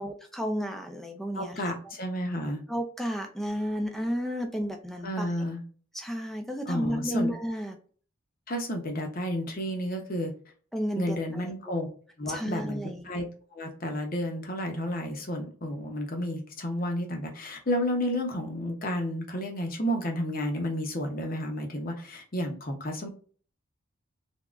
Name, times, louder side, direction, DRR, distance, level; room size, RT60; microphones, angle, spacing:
voice 1, 0.0-1.7 2.7-5.3 5.9-7.8 10.7-11.9 12.3-13.0, equal, ahead, 5 dB, 0.5 m, -32 dB
voice 2, 1.3-2.6 5.0-5.6 6.7-7.3 8.5-10.3 11.0-11.9 12.2-13.2 13.5-23.1, equal, 45° left, 3 dB, 0.8 m, -31 dB
3.5 x 2.9 x 2.4 m, 0.42 s
head